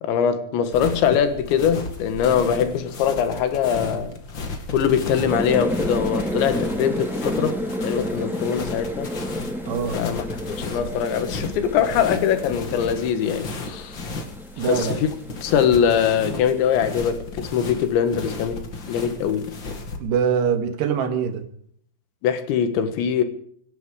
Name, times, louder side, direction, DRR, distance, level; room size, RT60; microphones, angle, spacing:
voice 1, 0.0-4.2 4.7-9.1 9.9-10.3 10.6-14.1 14.6-15.1 15.4-19.5 22.2-23.2, left 8 dB, 85° left, 3.8 m, -22 dB
sound 1, 0.7-20.0, left 3 dB, 40° left, 1.8 m, -34 dB
sound 2, 5.3-17.1, equal, ahead, 2.5 m, -31 dB
voice 2, 9.7-10.0 14.6-15.0 20.0-21.5, right 7 dB, 75° right, 3.7 m, -23 dB
25.0 x 11.0 x 4.9 m
omnidirectional pair, 5.1 m